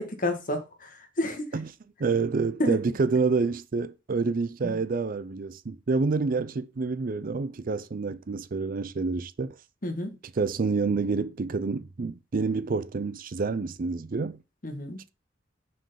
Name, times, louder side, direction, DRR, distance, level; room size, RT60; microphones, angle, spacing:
voice 1, 0.0-1.6 2.6-2.8 4.6-4.8 9.8-10.2 14.6-15.0, left 1 dB, 50° left, 1.6 m, -30 dB
voice 2, 2.0-9.6 10.4-14.4, right 4 dB, 50° right, 0.5 m, -28 dB
6.0 x 4.6 x 5.6 m
head